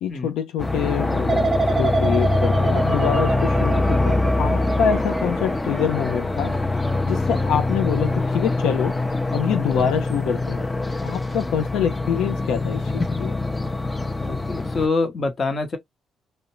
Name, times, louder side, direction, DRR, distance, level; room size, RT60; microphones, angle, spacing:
voice 1, 0.0-6.5 7.1-9.0 9.3-10.7 11.0-13.4, left 8 dB, 85° left, 0.4 m, -25 dB
sound 1, 0.6-14.9, left 2 dB, 15° left, 0.4 m, -24 dB
sound 2, 1.3-8.2 8.6-9.1, right 3 dB, 25° right, 0.8 m, -28 dB
voice 2, 14.2-15.8, left 3 dB, 40° left, 0.8 m, -25 dB
2.5 x 2.1 x 2.9 m
cardioid pair, 90°, 0 cm